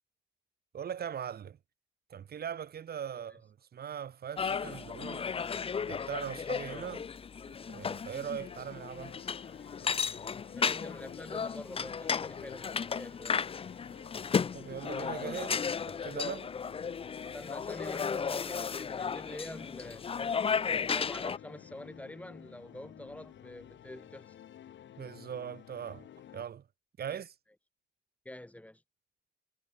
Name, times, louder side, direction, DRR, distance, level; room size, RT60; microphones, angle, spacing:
voice 1, 0.7-1.6 2.1-5.3 5.9-7.1 7.5-9.2 14.5-16.5 25.0-26.1 26.3-26.6 27.0-27.3, right 8 dB, 50° right, 1.3 m, -40 dB
sound 1, 4.4-21.4, left 6 dB, 30° left, 0.5 m, -34 dB
sound 2, 8.2-26.4, left 11 dB, 65° left, 2.7 m, -53 dB
voice 2, 10.5-13.5 17.3-20.0 20.6-24.4 27.1-27.2 28.2-28.8, left 1 dB, 5° left, 1.2 m, -46 dB
cardioid pair, 90°, 20 cm